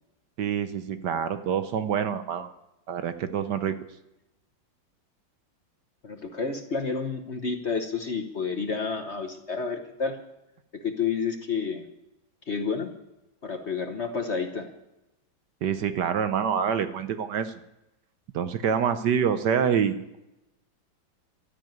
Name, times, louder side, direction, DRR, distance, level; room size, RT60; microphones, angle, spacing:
voice 1, 0.4-2.5 2.9-3.8 15.6-17.6 18.3-20.2, right 7 dB, 65° right, 10 dB, 1.3 m, -26 dB
voice 2, 6.0-10.2 10.7-11.9 12.5-12.9 13.4-14.7, left 5 dB, 40° left, 6 dB, 1.2 m, -30 dB
12.5 x 9.9 x 9.2 m, 0.92 s
omnidirectional pair, 2.1 m